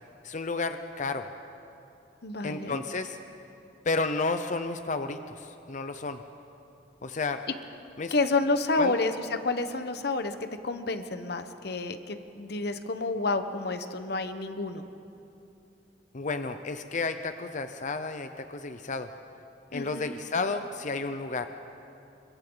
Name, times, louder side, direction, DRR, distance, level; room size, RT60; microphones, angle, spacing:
voice 1, 0.2-1.3 2.4-3.2 3.8-6.2 7.0-7.4 8.0-8.1 8.7-9.0 16.1-19.1 19.7-21.5, left 3 dB, 45° left, 8 dB, 0.7 m, -32 dB
voice 2, 2.2-2.8 8.1-10.4 10.6-14.9 19.7-20.1, left 3 dB, 65° left, 9 dB, 1.1 m, -29 dB
29.0 x 24.5 x 4.0 m, 2.8 s
head